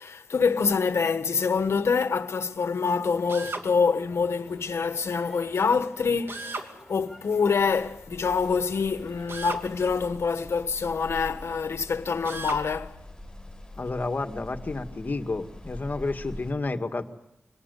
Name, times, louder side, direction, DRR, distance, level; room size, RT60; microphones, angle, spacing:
voice 1, 0.0-13.0, left 5 dB, 85° left, 1.4 m, -26 dB
Crowd, 3.1-9.8, equal, 5° right, 6.1 m, -52 dB
Drill, 3.3-3.7 6.3-6.7 9.3-9.7 12.2-12.6, right 3 dB, 65° right, 2.6 m, -35 dB
sound 1, 7.5-16.5, left 1 dB, 15° left, 5.8 m, -44 dB
voice 2, 13.8-17.0, left 3 dB, 40° left, 2.0 m, -30 dB
25.5 x 19.5 x 8.2 m
wide cardioid pair, 95°, 4 cm